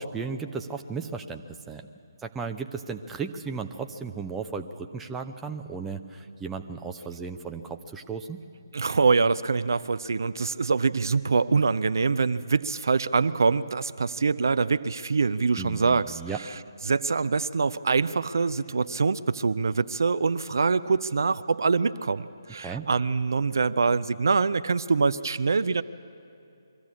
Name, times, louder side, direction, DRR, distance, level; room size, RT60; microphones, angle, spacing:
voice 1, 0.0-1.9 2.2-8.4 15.6-16.4 22.6-22.9, right 5 dB, 10° right, 5 dB, 0.6 m, -35 dB
voice 2, 8.7-16.2 16.9-25.8, right 4 dB, 55° right, 13 dB, 0.5 m, -24 dB
22.5 x 14.5 x 8.5 m, 2.6 s
figure-of-eight pair, 145°, 2 cm